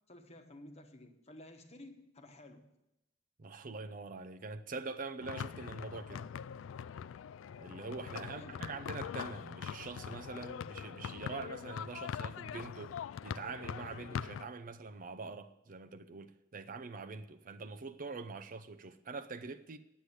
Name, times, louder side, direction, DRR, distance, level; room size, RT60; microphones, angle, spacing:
voice 1, 0.1-2.8 8.1-8.8, left 1 dB, 35° left, 1.1 m, -53 dB
voice 2, 3.4-6.3 7.6-12.9 13.2-19.8, right 4 dB, 45° right, 0.6 m, -44 dB
sound 1, 5.2-14.5, left 7 dB, 80° left, 0.3 m, -42 dB
9.8 x 8.1 x 8.4 m
head